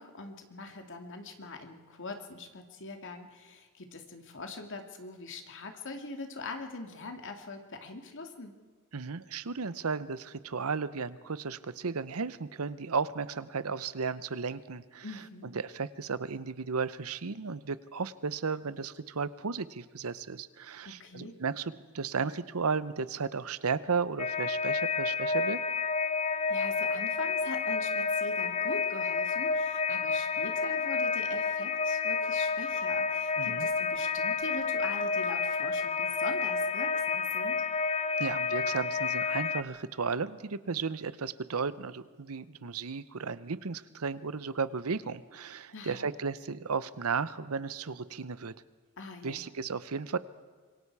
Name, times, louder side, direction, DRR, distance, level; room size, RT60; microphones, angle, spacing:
voice 1, 0.0-8.5 15.0-15.6 20.8-21.4 26.5-37.6 45.7-46.1 49.0-49.5, left 3 dB, 60° left, 5 dB, 2.5 m, -42 dB
voice 2, 8.9-15.0 15.5-25.6 33.4-33.7 38.2-48.5 49.2-50.2, right 5 dB, 70° right, 16 dB, 0.8 m, -34 dB
sound 1, 24.2-39.6, left 5 dB, 30° left, 0.8 m, -30 dB
26.0 x 23.5 x 4.8 m, 1.5 s
head